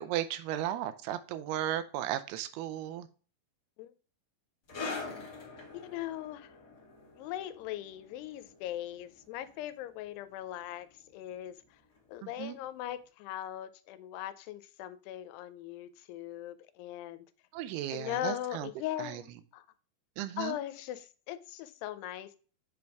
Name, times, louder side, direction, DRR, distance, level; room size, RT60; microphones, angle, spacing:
voice 1, 0.0-3.1 12.2-12.6 17.5-18.7 19.0-19.2 20.2-20.6, right 12 dB, 85° right, 2.5 m, -35 dB
sound 1, 4.7-11.7 11.9-12.2 12.9-13.0, left 4 dB, 40° left, 1.4 m, -45 dB
voice 2, 5.7-6.5 7.2-10.9 11.1-11.6 12.1-17.2 17.9-19.6 20.4-22.4, left 13 dB, 90° left, 2.7 m, -39 dB
7.5 x 3.5 x 4.5 m
omnidirectional pair, 4.6 m